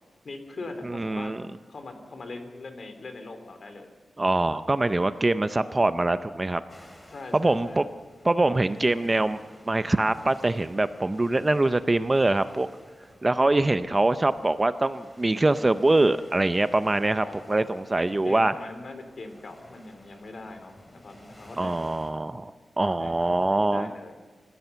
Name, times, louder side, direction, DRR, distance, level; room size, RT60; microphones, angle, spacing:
voice 1, 0.2-1.4 1.7-3.9 7.1-7.9 17.2-21.9 23.0-24.2, left 2 dB, 50° left, 7 dB, 2.8 m, -41 dB
voice 2, 0.8-1.4 4.2-6.6 7.3-7.8 8.2-9.4 9.7-12.7 13.2-18.5 21.6-22.5 22.8-23.9, right 2 dB, 20° right, 12 dB, 0.5 m, -23 dB
sound 1, 6.7-22.1, left 1 dB, 15° left, 2.9 m, -53 dB
28.0 x 15.0 x 6.9 m, 1.5 s
wide cardioid pair, 135°, 0 cm